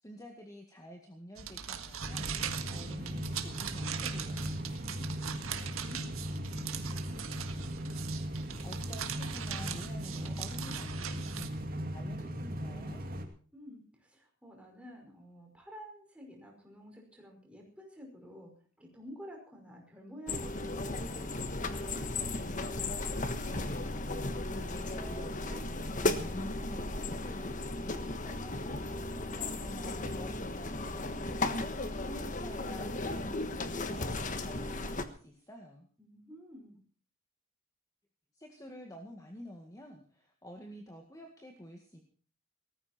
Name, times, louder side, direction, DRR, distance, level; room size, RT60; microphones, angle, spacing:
voice 1, 0.0-2.3 2.7-4.8 8.6-13.0 23.6-24.3 24.6-31.7 32.2-35.9 38.3-42.0, equal, 15° left, 2 dB, 2.0 m, -50 dB
sound 1, 1.4-11.5, right 8 dB, 90° right, 1.7 m, -41 dB
sound 2, 2.0-13.2, equal, 45° right, 2.4 m, -38 dB
voice 2, 13.5-22.1 36.0-36.8, equal, 5° right, 0 dB, 5.3 m, -51 dB
sound 3, 20.3-35.0, left 2 dB, 40° left, 1.4 m, -35 dB
18.5 x 15.0 x 4.4 m, 0.42 s
head